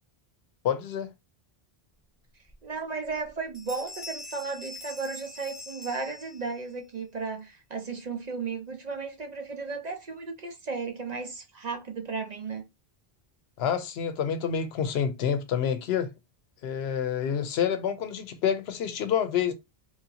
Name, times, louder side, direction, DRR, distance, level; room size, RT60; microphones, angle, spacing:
voice 1, 0.6-1.1 13.6-16.1 16.6-19.5, left 8 dB, 85° left, 0.8 m, -28 dB
Bell, 2.5-2.6 3.0-3.3 3.5-6.7, left 2 dB, ahead, 1.0 m, -43 dB
voice 2, 2.6-12.6, right 4 dB, 50° right, 0.6 m, -35 dB
3.0 x 2.7 x 2.7 m
omnidirectional pair, 1.0 m